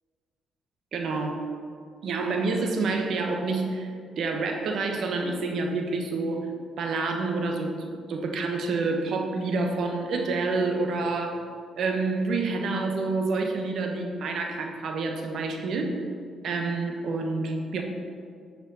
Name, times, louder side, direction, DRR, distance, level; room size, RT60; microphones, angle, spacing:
voice 1, 0.9-1.4 2.0-6.5 6.8-11.4 11.8-15.9 16.4-17.8, right 3 dB, 65° right, 3 dB, 1.0 m, -28 dB
10.5 x 4.9 x 4.1 m, 2.2 s
cardioid pair, 90°, 0 cm